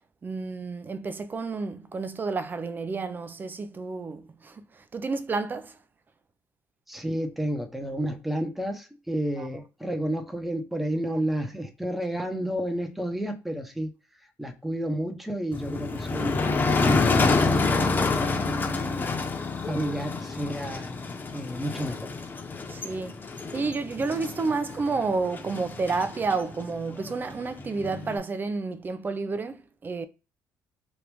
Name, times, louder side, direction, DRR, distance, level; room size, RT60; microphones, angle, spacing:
voice 1, 0.2-5.8 9.4-9.5 22.7-23.2 23.5-30.1, right 4 dB, 30° right, 0.5 m, -30 dB
voice 2, 6.9-13.9 14.4-16.5 16.8-19.2 19.6-22.1, right 1 dB, 5° right, 0.8 m, -31 dB
Motor vehicle (road), 15.5-28.2, left 3 dB, 30° left, 0.9 m, -28 dB
3.0 x 2.5 x 3.4 m
supercardioid pair, 85°, 7 cm